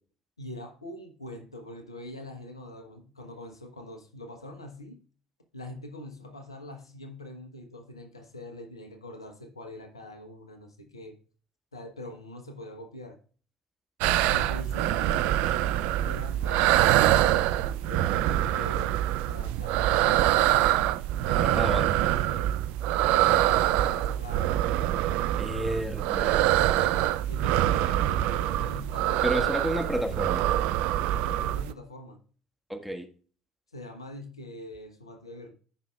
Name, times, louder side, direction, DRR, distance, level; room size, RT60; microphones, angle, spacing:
voice 1, 0.4-5.0 5.5-11.2 11.7-13.2 14.3-15.5 16.0-21.0 21.4-22.6 23.0-24.5 25.8-25.9 26.6-26.7 27.3-29.8 31.1-32.2 33.7-35.5, left 1 dB, 90° left, 1.0 m, -43 dB
sound 1, 14.0-31.7, right 13 dB, 65° right, 0.4 m, -25 dB
voice 2, 21.3-21.9 25.4-26.5 29.2-30.4 32.7-33.1, equal, 5° right, 1.7 m, -31 dB
14.0 x 5.6 x 2.3 m
figure-of-eight pair, 60°, 3 cm